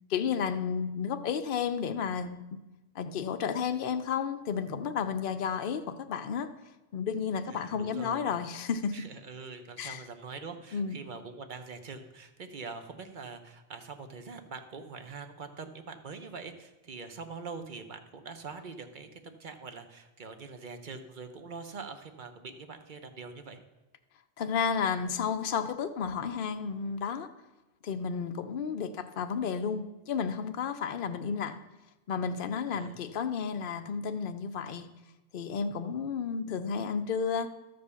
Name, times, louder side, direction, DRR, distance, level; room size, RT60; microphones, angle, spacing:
voice 1, 0.1-2.4 2.9-6.5 6.9-8.9 9.8-10.0 10.7-11.0 24.4-27.3 27.8-31.6 32.1-34.9 35.3-37.5, left 6 dB, 60° left, 8 dB, 0.8 m, -32 dB
voice 2, 7.5-8.2 8.9-23.6 32.7-33.0, right 4 dB, 55° right, 7 dB, 1.0 m, -44 dB
12.5 x 5.2 x 6.9 m, 1.0 s
omnidirectional pair, 1.0 m